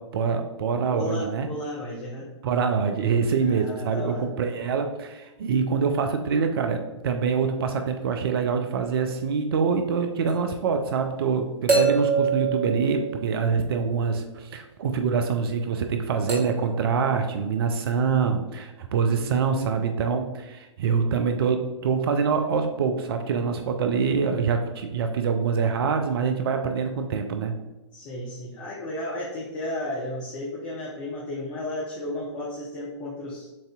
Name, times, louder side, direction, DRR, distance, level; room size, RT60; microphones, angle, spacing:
voice 1, 0.1-1.5 2.4-27.5, right 5 dB, 50° right, 5 dB, 0.4 m, -25 dB
voice 2, 0.9-2.3 3.4-4.3 19.1-19.6 27.9-33.5, left 1 dB, 30° left, -4 dB, 0.9 m, -33 dB
sound 1, 10.3-10.4 11.7-13.7 16.3-16.7 17.9-18.0, right 5 dB, 20° right, 1.3 m, -25 dB
7.3 x 2.6 x 2.3 m, 1.1 s
figure-of-eight pair, 115°, 16 cm